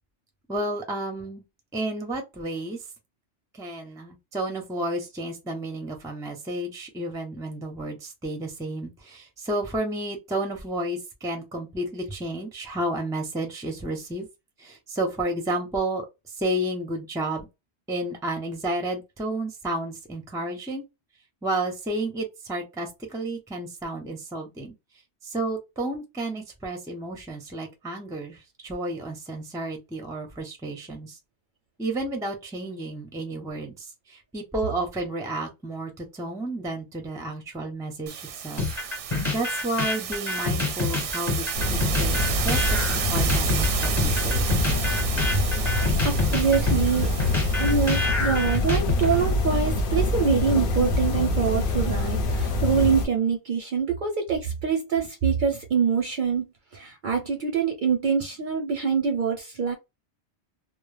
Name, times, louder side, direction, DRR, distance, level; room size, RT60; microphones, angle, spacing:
voice 1, 0.5-1.4 1.7-2.8 3.6-14.3 14.6-17.5 17.9-20.8 21.4-24.7 25.2-31.2 31.8-38.7 39.0-44.5 45.3-45.5, right 1 dB, 5° right, 0.4 m, -31 dB
sound 1, 38.1-48.1, right 8 dB, 85° right, 0.9 m, -32 dB
sound 2, 38.6-49.4, left 3 dB, 25° left, 0.9 m, -28 dB
sound 3, 41.5-53.1, left 2 dB, 55° left, 0.8 m, -25 dB
voice 2, 45.6-47.1 47.6-59.7, right 6 dB, 60° right, 0.6 m, -25 dB
2.1 x 2.0 x 3.1 m
omnidirectional pair, 1.2 m